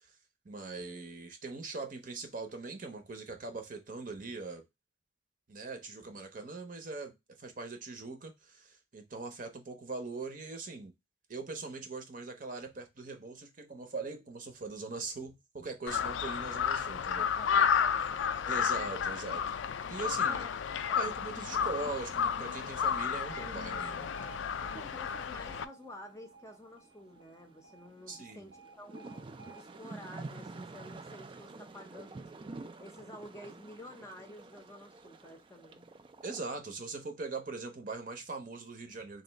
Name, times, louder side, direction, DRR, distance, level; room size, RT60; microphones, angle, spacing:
voice 1, 0.4-4.6 5.5-7.1 7.4-10.9 11.3-17.3 18.4-19.6 19.9-20.4 21.0-24.1 28.1-28.5 36.2-39.2, right 3 dB, 45° right, 0.7 m, -41 dB
Crow, 15.9-25.6, left 7 dB, 85° left, 0.4 m, -32 dB
voice 2, 17.2-18.5 20.3-20.6 20.9-21.2 24.6-29.1 29.5-35.9, left 1 dB, 15° left, 0.6 m, -51 dB
sound 1, 21.5-36.4, right 3 dB, 25° right, 0.3 m, -50 dB
Alarm, 22.8-30.9, right 4 dB, 90° right, 1.1 m, -53 dB
3.2 x 2.6 x 3.9 m
head